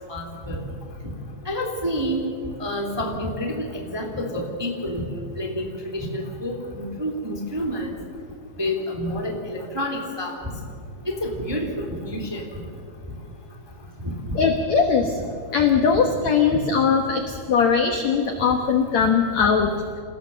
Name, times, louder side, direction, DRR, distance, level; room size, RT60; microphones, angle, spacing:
voice 1, 0.1-0.6 1.4-2.2 2.6-3.6 3.9-5.0 5.3-7.9 8.6-10.4 11.0-12.4 14.0-14.3, equal, 10° right, 0 dB, 1.4 m, -28 dB
voice 2, 14.3-15.1 15.5-19.7, left 6 dB, 80° left, 4 dB, 1.5 m, -20 dB
27.0 x 16.5 x 6.8 m, 2.3 s
omnidirectional pair, 5.1 m